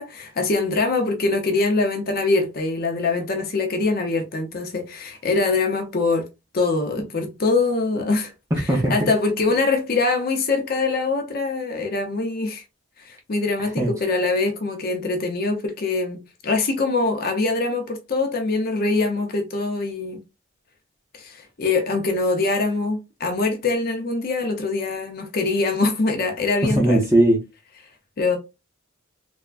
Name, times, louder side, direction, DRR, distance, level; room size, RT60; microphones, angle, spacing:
voice 1, 0.0-6.3 6.5-8.3 8.9-12.6 13.0-20.2 21.1-27.0 28.2-28.4, left 3 dB, 45° left, 0.5 m, -23 dB
voice 2, 8.5-9.1 13.8-13.9 26.6-27.4, right 1 dB, 15° right, 0.6 m, -19 dB
3.3 x 2.1 x 2.4 m
head